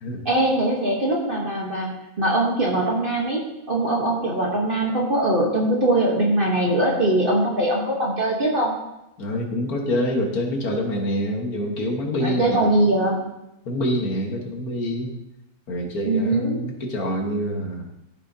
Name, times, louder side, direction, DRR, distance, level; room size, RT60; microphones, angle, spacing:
voice 1, 0.2-8.7 12.2-13.3 16.0-16.6, right 1 dB, 40° right, -2 dB, 1.3 m, -22 dB
voice 2, 9.2-12.6 13.7-15.2 15.7-17.9, equal, 75° left, 1 dB, 1.9 m, -26 dB
13.5 x 6.0 x 2.8 m, 0.92 s
omnidirectional pair, 1.6 m